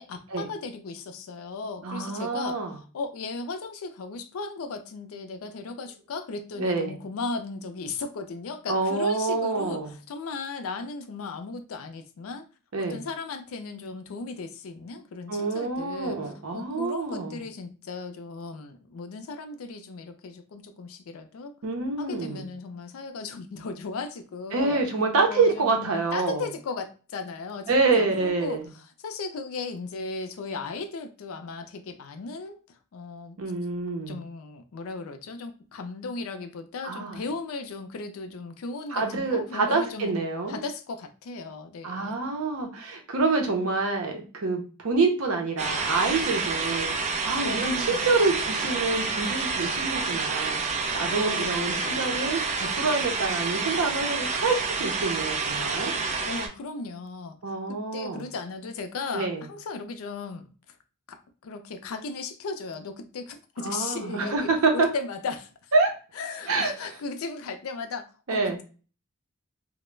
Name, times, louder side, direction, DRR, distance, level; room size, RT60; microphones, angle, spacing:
voice 1, 0.0-12.4 12.8-16.2 16.5-21.5 22.0-24.8 25.3-32.6 32.9-33.4 34.1-40.1 40.5-42.3 47.4-48.9 51.1-52.2 56.2-57.4 57.7-60.8 61.1-65.5 66.2-68.6, left 4 dB, 75° left, 0.4 m, -36 dB
voice 2, 1.8-2.7 6.6-6.9 8.7-9.9 12.7-13.0 15.3-17.4 21.6-22.4 24.5-26.5 27.7-28.7 33.4-34.2 36.8-37.2 38.9-40.6 41.8-55.9 57.4-58.2 59.1-59.4 63.6-64.9 65.7-65.9 66.5-66.7 68.3-68.6, right 3 dB, 75° right, 0.6 m, -27 dB
sound 1, 45.6-56.5, right 4 dB, 35° right, 0.4 m, -28 dB
2.2 x 2.0 x 3.1 m
head